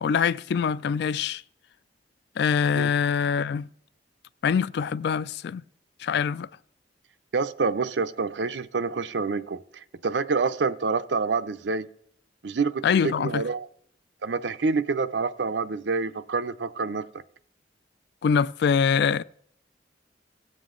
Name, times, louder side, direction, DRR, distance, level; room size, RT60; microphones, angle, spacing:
voice 1, 0.0-1.4 2.4-3.7 4.4-5.6 6.0-6.5 12.8-13.4 18.2-19.2, left 6 dB, 65° left, 0.3 m, -24 dB
voice 2, 7.3-9.6 10.0-11.9 12.4-13.7 14.2-17.1, right 4 dB, 75° right, 0.6 m, -27 dB
17.0 x 7.5 x 3.8 m
head